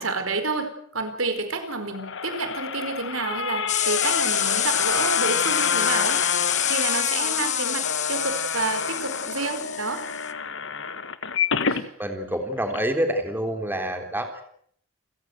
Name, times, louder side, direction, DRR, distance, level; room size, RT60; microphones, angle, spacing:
voice 1, 0.0-6.4 6.7-10.0 11.7-11.9, right 3 dB, 80° right, 8 dB, 4.5 m, -29 dB
sound 1, 1.7-11.8 12.3-12.4 12.7-12.8, left 5 dB, 65° left, 1.6 m, -28 dB
sound 2, 3.7-10.3, left 10 dB, 35° left, 1.2 m, -27 dB
voice 2, 12.0-14.4, right 1 dB, 10° right, 5 dB, 3.6 m, -27 dB
29.5 x 16.0 x 8.1 m, 0.65 s
head